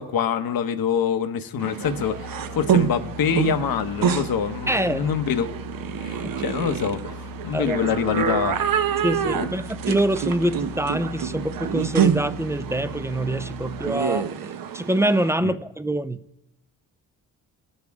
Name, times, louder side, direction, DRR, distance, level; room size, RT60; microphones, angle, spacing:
voice 1, 0.0-5.5 6.0-8.6 9.2-9.5 15.4-15.6, left 7 dB, 65° left, 10 dB, 1.0 m, -25 dB
sound 1, 1.6-15.3, right 8 dB, 60° right, 0.8 m, -27 dB
sound 2, 1.8-13.9, left 4 dB, 85° left, 1.3 m, -41 dB
voice 2, 4.7-5.1 6.2-6.3 7.5-7.9 9.0-14.3 14.7-16.2, right 1 dB, 5° right, 13 dB, 0.4 m, -25 dB
18.5 x 6.6 x 3.5 m, 0.89 s
cardioid pair, 75°, 38 cm